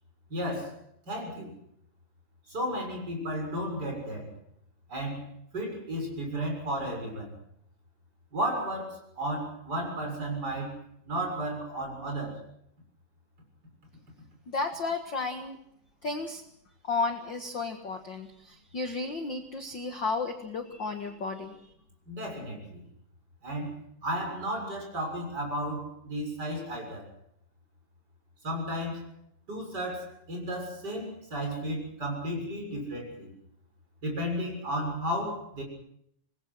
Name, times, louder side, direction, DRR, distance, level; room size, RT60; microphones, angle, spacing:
voice 1, 0.3-0.7 1.1-1.5 2.5-4.3 4.9-5.2 5.5-7.4 8.3-10.8 11.1-12.4 22.1-22.8 23.4-23.7 24.0-27.1 28.4-29.0 29.5-33.3 34.0-35.6, equal, 30° right, 2 dB, 7.2 m, -33 dB
voice 2, 14.5-15.6 16.0-16.4 16.8-21.7, left 3 dB, 45° left, 5 dB, 1.8 m, -33 dB
26.5 x 21.0 x 6.2 m, 0.71 s
omnidirectional pair, 3.8 m